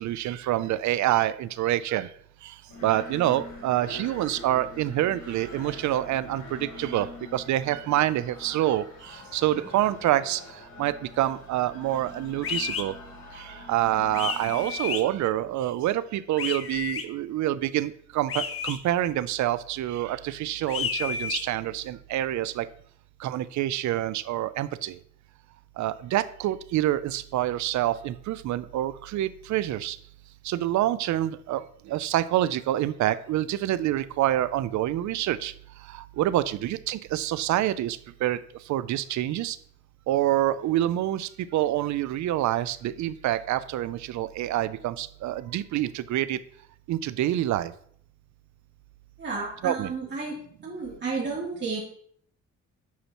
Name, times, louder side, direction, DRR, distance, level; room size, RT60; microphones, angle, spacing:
voice 1, 0.0-2.1 2.4-2.5 2.8-10.4 10.8-12.9 13.3-22.7 23.2-25.0 25.8-30.0 30.4-35.5 35.9-38.4 38.7-39.6 40.1-46.4 46.9-47.7 49.6-49.9, right 13 dB, 70° right, 15 dB, 0.5 m, -27 dB
sound 1, 2.7-15.0, left 3 dB, 80° left, 3.1 m, -45 dB
sound 2, 12.4-12.8 14.1-15.0 16.4-17.0 18.3-18.8 20.7-21.4, left 7 dB, 50° left, 0.7 m, -31 dB
voice 2, 49.2-51.8, right 4 dB, 35° right, -7 dB, 3.1 m, -32 dB
8.4 x 5.6 x 3.0 m, 0.62 s
cardioid pair, 90°, 30 cm